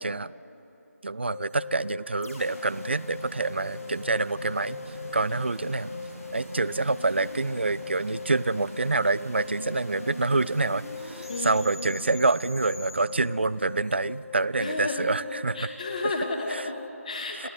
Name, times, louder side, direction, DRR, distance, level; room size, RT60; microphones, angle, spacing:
voice 1, 0.0-0.3 1.0-6.0 6.3-15.7 16.5-16.7 17.3-17.5, right 3 dB, 45° right, 19 dB, 0.4 m, -27 dB
sound 1, 1.3-16.9, left 5 dB, 50° left, 1.1 m, -41 dB
sound 2, 2.2-13.0, equal, 75° left, 6.0 m, -43 dB
sound 3, 2.7-14.1, equal, 85° right, 1.8 m, -46 dB
voice 2, 11.3-11.7 14.6-15.1 15.5-17.5, left 2 dB, 30° left, 3 dB, 2.4 m, -32 dB
28.5 x 13.5 x 9.4 m, 2.9 s
figure-of-eight pair, 165°, 8 cm